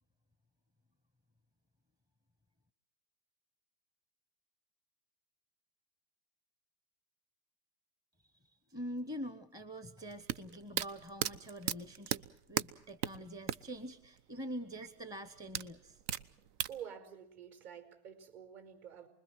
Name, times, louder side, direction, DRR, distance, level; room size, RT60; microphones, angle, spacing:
voice 1, 8.4-12.2 12.5-16.0, equal, 5° right, 12 dB, 0.9 m, -45 dB
sound 1, 10.1-13.8 14.0-14.1 15.5-16.8, right 10 dB, 65° right, 1.1 m, -35 dB
voice 2, 16.7-19.1, right 8 dB, 45° right, 9 dB, 4.8 m, -49 dB
28.5 x 21.5 x 6.1 m, 0.66 s
supercardioid pair, 135°, 49 cm